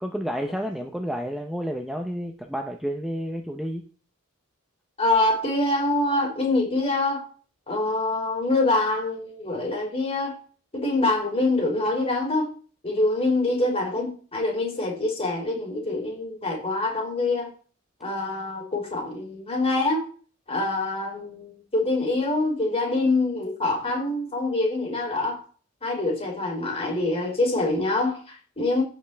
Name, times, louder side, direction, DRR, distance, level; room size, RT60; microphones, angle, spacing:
voice 1, 0.0-3.8, equal, ahead, 0.6 m, -30 dB
voice 2, 5.0-7.2 7.7-10.4 10.7-12.5 12.8-17.5 18.0-20.1 20.5-25.4 25.8-28.8, left 2 dB, 30° left, 3.4 m, -25 dB
15.5 x 5.3 x 3.4 m
head